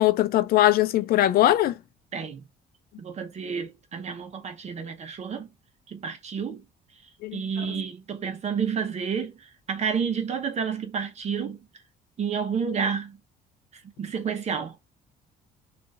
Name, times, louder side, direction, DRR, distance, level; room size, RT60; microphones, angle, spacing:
voice 1, 0.0-1.7 7.2-7.7, left 14 dB, 65° left, 0.4 m, -21 dB
voice 2, 2.1-2.4 3.0-5.5 5.9-6.6 7.3-11.6 12.2-13.2 14.0-14.8, right 6 dB, 40° right, 0.7 m, -30 dB
3.8 x 2.5 x 4.5 m
cardioid pair, 110°, 17 cm